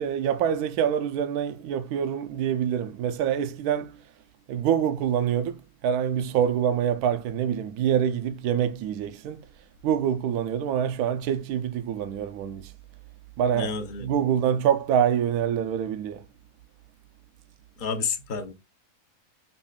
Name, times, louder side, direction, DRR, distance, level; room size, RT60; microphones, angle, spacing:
voice 1, 0.0-4.0 4.5-9.5 9.8-12.7 13.4-16.3, right 9 dB, 75° right, 1.0 m, -26 dB
voice 2, 13.5-14.1 17.8-18.5, left 5 dB, 50° left, 0.6 m, -30 dB
5.4 x 2.4 x 2.3 m
omnidirectional pair, 1.7 m